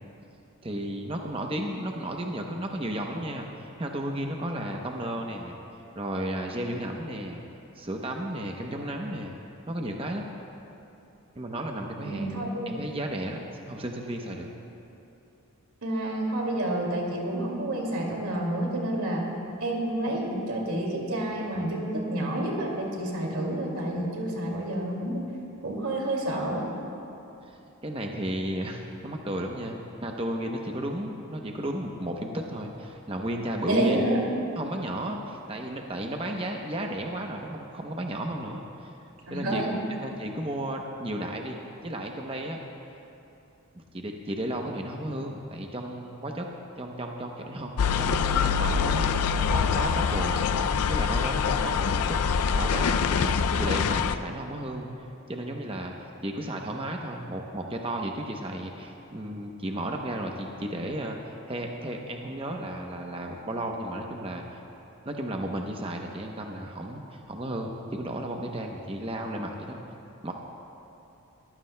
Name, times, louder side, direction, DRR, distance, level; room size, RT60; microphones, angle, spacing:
voice 1, 0.6-5.6 6.0-7.4 7.8-9.4 9.7-10.3 11.4-13.4 13.7-14.5 27.5-34.0 34.6-38.9 39.3-39.6 40.0-42.6 43.9-46.5 46.8-47.7 48.0-49.1 49.4-50.4 50.9-52.2 52.4-54.9 55.3-55.9 56.2-64.4 65.1-69.8 70.2-70.3, right 1 dB, 25° right, 2 dB, 0.8 m, -33 dB
voice 2, 12.0-12.7 15.8-19.2 19.6-25.2 25.6-26.7 33.7-34.2 39.3-39.7, right 1 dB, 80° right, -1 dB, 2.3 m, -29 dB
sound 1, 47.8-54.2, left 6 dB, 85° left, 0.4 m, -25 dB
23.0 x 15.0 x 2.2 m, 2.9 s
head